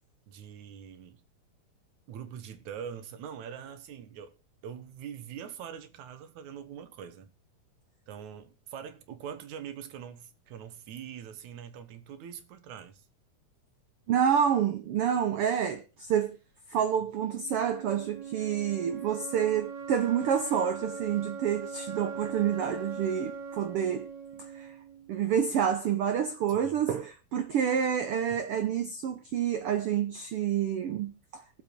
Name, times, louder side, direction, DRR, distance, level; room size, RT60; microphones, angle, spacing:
voice 1, 0.3-1.2 2.1-4.3 4.6-7.3 8.1-13.1 26.5-26.8, right 8 dB, 70° right, 2.5 m, -43 dB
voice 2, 14.1-16.4 16.7-24.1 24.4-24.7 25.1-31.6, right 8 dB, 90° right, 1.2 m, -28 dB
sound 1, 17.2-25.2, right 5 dB, 40° right, 2.1 m, -41 dB
17.5 x 7.6 x 4.5 m
omnidirectional pair, 3.7 m